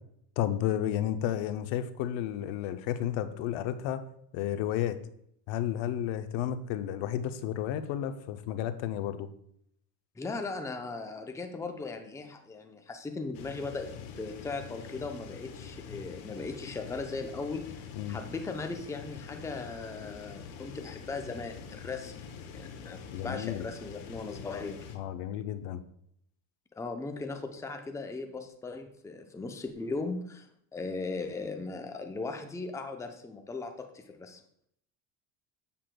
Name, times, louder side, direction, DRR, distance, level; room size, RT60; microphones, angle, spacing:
voice 1, 0.4-4.1 4.3-5.0 5.5-9.3 18.0-18.2 23.1-23.6 24.9-25.8, left 11 dB, 70° left, 10 dB, 0.7 m, -32 dB
voice 2, 10.2-17.6 18.1-24.8 26.8-34.4, left 3 dB, 5° left, 5 dB, 0.6 m, -38 dB
sound 1, 13.3-25.0, left 6 dB, 90° left, 1.1 m, -45 dB
7.4 x 6.9 x 2.2 m, 0.70 s
supercardioid pair, 100°, 47 cm